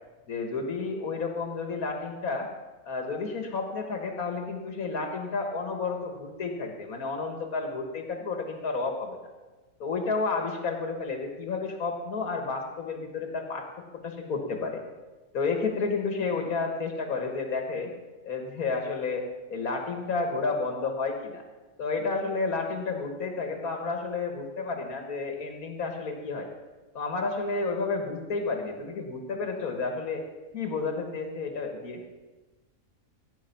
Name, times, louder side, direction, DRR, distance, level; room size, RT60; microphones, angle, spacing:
voice 1, 0.3-2.5 2.9-9.2 9.8-13.7 13.9-14.8 15.3-17.9 18.2-21.4 21.8-26.5 26.9-30.2 30.5-32.0, left 4 dB, 90° left, 3 dB, 1.9 m, -31 dB
17.0 x 8.9 x 5.8 m, 1.2 s
omnidirectional pair, 1.5 m